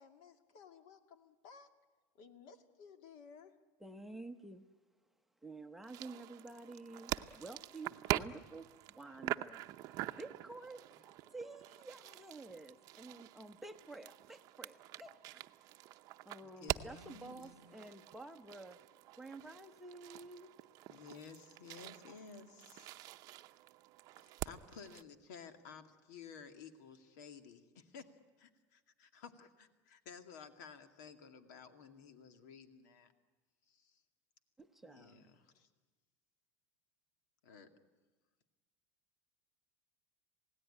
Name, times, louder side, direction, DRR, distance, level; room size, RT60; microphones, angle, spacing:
voice 1, 0.0-1.7 2.1-3.6 11.3-11.4 11.8-12.1, left 6 dB, 55° left, 7 dB, 2.2 m, -58 dB
voice 2, 3.8-4.6 5.4-15.4 16.2-18.8 19.2-20.5 34.6-35.2, right 2 dB, 5° right, 6 dB, 0.8 m, -51 dB
sound 1, 5.8-25.0, right 15 dB, 40° right, 0.7 m, -45 dB
voice 3, 16.4-17.8 20.9-23.0 24.2-33.1 33.7-34.0 34.8-35.7 37.4-37.7, left 6 dB, 90° left, 7 dB, 2.3 m, -54 dB
27.5 x 18.0 x 9.9 m, 1.3 s
cardioid pair, 165°, 9 cm